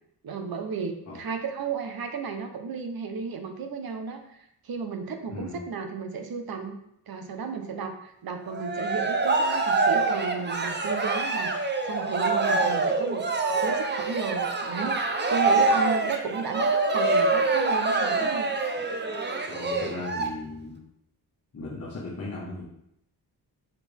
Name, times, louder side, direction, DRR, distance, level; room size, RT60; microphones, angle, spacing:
voice 1, 0.2-4.4 4.6-6.8 7.1-13.3 13.6-18.5, right 5 dB, 65° right, 6 dB, 1.1 m, -33 dB
Cheering, 8.5-20.2, right 3 dB, 25° right, 0.8 m, -25 dB
voice 2, 19.5-20.8 21.5-22.6, left 2 dB, 40° left, -6 dB, 1.7 m, -37 dB
6.8 x 6.3 x 3.6 m, 0.78 s
wide cardioid pair, 135°, 39 cm